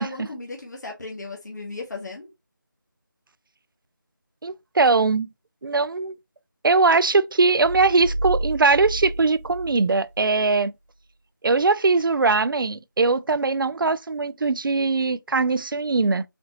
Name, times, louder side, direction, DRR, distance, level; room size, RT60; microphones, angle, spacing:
voice 1, 0.0-2.3, left 2 dB, 55° left, 1.1 m, -36 dB
voice 2, 4.4-5.3 5.6-6.1 6.6-10.7 11.4-16.2, right 3 dB, 85° right, 0.4 m, -21 dB
sound 1, 7.6-10.5, right 1 dB, 35° left, 1.1 m, -31 dB
4.1 x 2.7 x 2.8 m
figure-of-eight pair, 175°, 11 cm